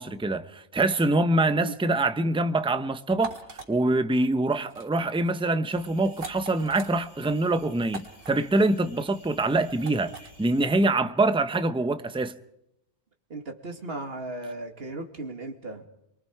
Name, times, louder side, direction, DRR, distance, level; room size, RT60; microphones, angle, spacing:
voice 1, 0.0-3.4 3.7-10.1 10.4-12.3, right 2 dB, 5° right, 0.5 m, -24 dB
sound 1, 3.1-3.7 4.6-4.9 5.1-5.4 6.1-6.9 7.9-8.3 9.8-10.3, right 4 dB, 80° right, 3.8 m, -40 dB
sound 2, 5.7-10.8, left 1 dB, 55° left, 7.2 m, -53 dB
voice 2, 13.3-15.9, right 2 dB, 40° right, 2.5 m, -36 dB
28.5 x 23.5 x 4.7 m
omnidirectional pair, 1.6 m